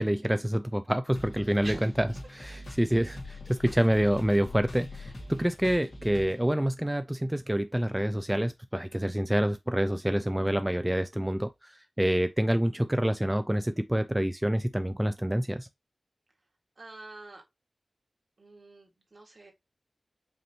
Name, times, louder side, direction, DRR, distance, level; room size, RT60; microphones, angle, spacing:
voice 1, 0.0-15.7, equal, 10° right, 0.3 m, -27 dB
sound 1, 1.1-6.5, left 1 dB, 80° left, 1.9 m, -43 dB
voice 2, 16.8-17.4 18.4-19.5, right 2 dB, 55° right, 1.7 m, -45 dB
5.2 x 2.9 x 2.8 m
wide cardioid pair, 65°, 0 cm